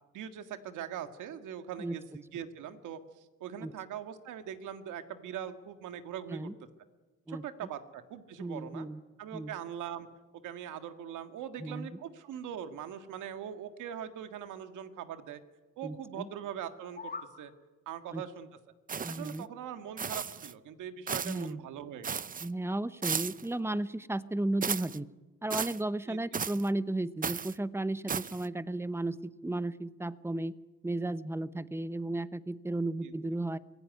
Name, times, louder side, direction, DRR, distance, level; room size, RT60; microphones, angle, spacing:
voice 1, 0.1-6.5 7.3-8.9 9.2-10.1 10.4-15.4 15.8-17.1 17.4-17.5 17.9-18.5 19.1-22.3 26.1-26.2 33.0-33.1, right 9 dB, 85° right, 8 dB, 1.9 m, -41 dB
voice 2, 8.4-9.0 9.3-9.5 11.6-12.0 15.8-16.3 18.1-18.2 19.0-19.5 21.2-21.6 22.4-25.1 25.4-30.5 30.8-33.6, right 2 dB, 10° right, 15 dB, 0.9 m, -34 dB
sound 1, 16.7-17.4, left 4 dB, 30° left, 3.0 m, -43 dB
sound 2, 18.9-19.4 20.0-20.5 21.1-21.5 22.0-22.5 23.0-23.5 24.6-25.0 25.5-25.8 26.3-26.7 27.2-27.6 28.1-28.5, right 6 dB, 30° right, 0.7 m, -35 dB
24.5 x 17.0 x 9.4 m, 1.2 s
cardioid pair, 90°, 30 cm